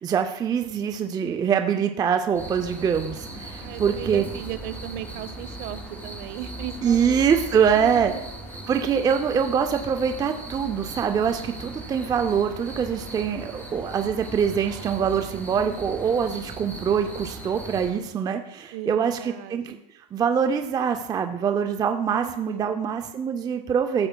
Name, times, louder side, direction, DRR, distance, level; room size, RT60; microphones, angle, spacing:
voice 1, 0.0-4.2 6.8-8.1 8.7-19.8 20.1-24.1, right 7 dB, 20° right, 6 dB, 0.4 m, -24 dB
sound 1, 2.3-17.9, right 1 dB, 10° left, 3.7 m, -38 dB
voice 2, 3.6-7.3 7.5-8.2 18.7-19.8 22.1-22.7, right 11 dB, 50° right, 12 dB, 0.8 m, -37 dB
14.5 x 7.6 x 2.2 m, 0.85 s
supercardioid pair, 130°, 21 cm